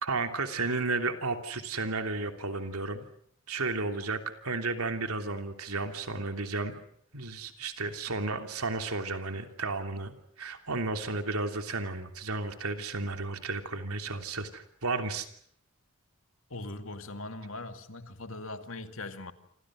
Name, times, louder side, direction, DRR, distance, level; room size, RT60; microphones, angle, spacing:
voice 1, 0.0-3.1 3.5-6.7 7.1-15.3, right 3 dB, 85° right, 3.2 m, -33 dB
voice 2, 16.5-19.3, left 2 dB, 65° left, 2.4 m, -40 dB
28.0 x 27.5 x 6.4 m
head